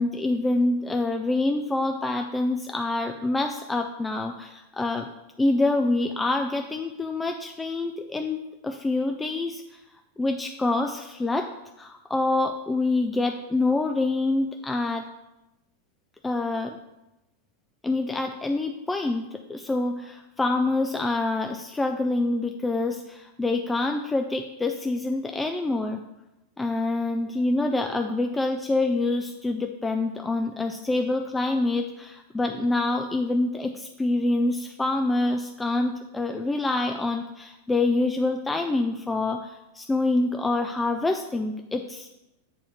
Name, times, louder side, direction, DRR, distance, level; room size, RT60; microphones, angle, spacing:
voice 1, 0.0-5.1 5.4-9.8 10.2-11.5 11.8-15.1 16.2-16.8 17.8-26.0 26.6-42.1, left 2 dB, 10° left, 4 dB, 0.4 m, -26 dB
8.2 x 2.8 x 6.0 m, 0.95 s
figure-of-eight pair, 90°, 0 cm